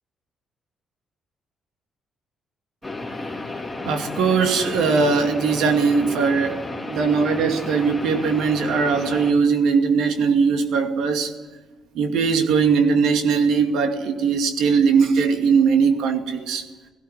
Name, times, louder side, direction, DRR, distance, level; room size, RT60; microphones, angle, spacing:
sound 1, 2.8-9.3, left 2 dB, 10° left, 2.9 m, -32 dB
voice 1, 3.8-11.3 11.9-16.6, right 5 dB, 85° right, 2.5 m, -20 dB
17.5 x 16.0 x 9.8 m
cardioid pair, 90°, 0 cm